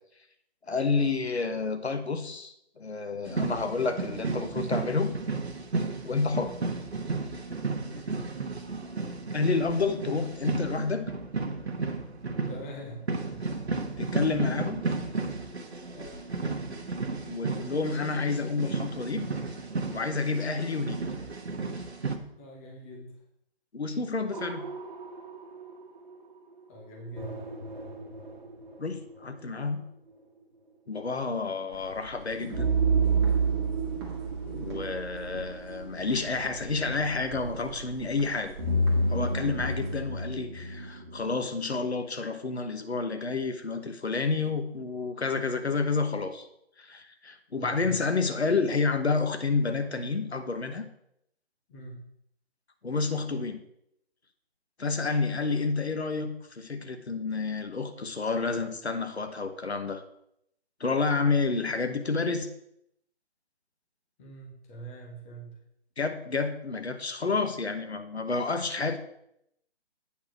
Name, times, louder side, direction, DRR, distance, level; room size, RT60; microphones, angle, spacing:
voice 1, 0.7-5.1 6.0-6.6 9.3-11.1 13.7-14.8 17.3-19.3 19.9-21.0 23.7-24.7 28.8-29.8 30.9-32.7 34.5-38.5 39.1-46.5 46.8-50.8 52.8-53.6 54.8-60.0 60.8-62.5 66.0-69.0, left 4 dB, 80° left, 7 dB, 1.2 m, -29 dB
sound 1, 3.2-22.2, right 3 dB, 80° right, 1.2 m, -33 dB
voice 2, 7.9-8.7 12.5-13.0 13.3-13.4 15.8-16.2 22.4-23.2 26.7-27.4 47.5-48.0 51.7-52.1 55.3-55.4 64.2-65.6, right 2 dB, 15° left, 0 dB, 0.9 m, -44 dB
sound 2, 24.3-26.1 27.2-29.3 32.5-36.3 38.6-41.4, right 3 dB, 45° right, 1.5 m, -30 dB
sound 3, 31.7-40.0, right 3 dB, 25° right, 1.3 m, -44 dB
8.6 x 4.2 x 6.1 m, 0.75 s
figure-of-eight pair, 150°, 32 cm